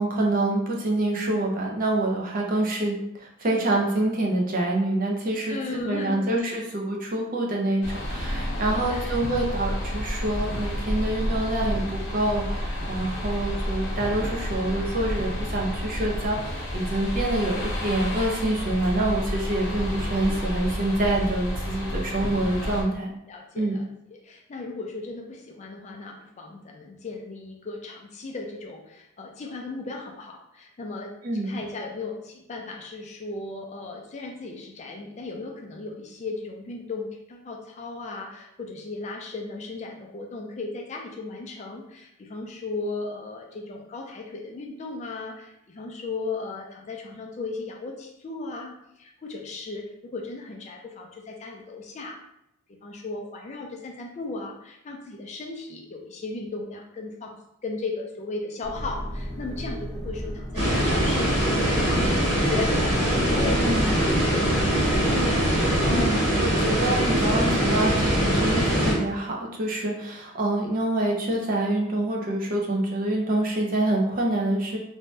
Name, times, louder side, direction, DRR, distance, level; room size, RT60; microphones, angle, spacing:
voice 1, 0.0-23.1 23.6-23.8 31.2-31.5 63.6-63.9 65.8-74.8, right 1 dB, 40° right, -1 dB, 0.5 m, -26 dB
voice 2, 5.5-6.6 8.6-9.2 23.3-31.1 31.4-52.2 52.8-57.4 57.6-61.8 62.3-64.6 65.1-65.5 65.9-66.3, left 3 dB, 30° left, 1 dB, 0.4 m, -36 dB
sound 1, 7.8-22.8, equal, 50° left, 0.8 m, -30 dB
sound 2, 58.6-66.0, equal, 5° right, 0.7 m, -34 dB
sound 3, 60.5-68.9, right 1 dB, 90° right, 1.3 m, -22 dB
2.6 x 2.2 x 3.1 m, 0.80 s
head